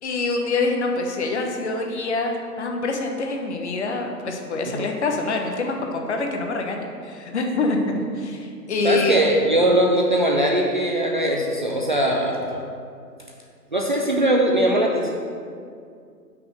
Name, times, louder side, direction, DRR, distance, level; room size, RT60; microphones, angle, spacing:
voice 1, 0.0-9.2, left 3 dB, 45° left, 3 dB, 1.0 m, -25 dB
voice 2, 8.8-12.6 13.7-15.1, right 1 dB, 30° right, -1 dB, 0.5 m, -20 dB
5.9 x 5.8 x 6.5 m, 2.3 s
figure-of-eight pair, 135°, 49 cm